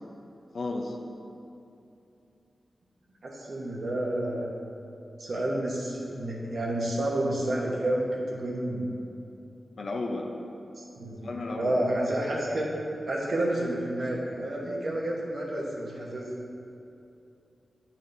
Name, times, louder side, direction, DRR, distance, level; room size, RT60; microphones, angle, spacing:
voice 1, 0.5-1.0 9.8-10.3 11.2-11.8, left 2 dB, 60° left, 2 dB, 0.6 m, -33 dB
voice 2, 3.2-4.5 5.2-8.9 10.8-12.7 13.1-16.3, right 1 dB, 65° right, -4 dB, 1.1 m, -30 dB
9.6 x 4.2 x 2.6 m, 2.7 s
wide cardioid pair, 105°, 0 cm